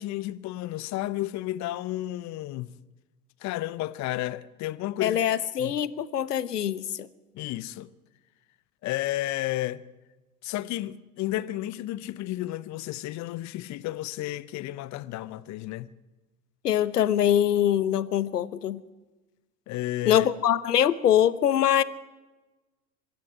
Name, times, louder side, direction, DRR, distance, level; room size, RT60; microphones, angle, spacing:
voice 1, 0.0-2.8 3.4-5.2 5.6-5.8 7.3-7.9 8.8-9.8 10.4-15.9 19.7-20.3, left 15 dB, 35° left, 0.9 m, -32 dB
voice 2, 5.0-7.1 16.6-18.8 20.1-21.8, left 10 dB, 80° left, 1.1 m, -23 dB
25.0 x 13.5 x 9.5 m
figure-of-eight pair, 85°, 47 cm